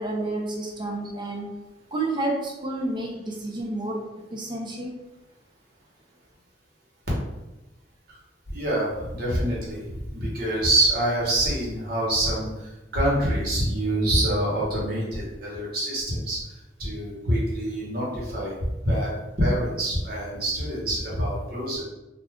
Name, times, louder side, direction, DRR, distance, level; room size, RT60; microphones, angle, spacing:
voice 1, 0.0-1.5 1.9-4.0 4.3-5.0, right 2 dB, 25° right, -1 dB, 0.5 m, -30 dB
voice 2, 8.5-16.4 16.8-18.5 18.8-19.1 19.4-21.8, right 1 dB, 60° right, -5 dB, 1.2 m, -26 dB
2.5 x 2.3 x 3.4 m, 1.0 s
head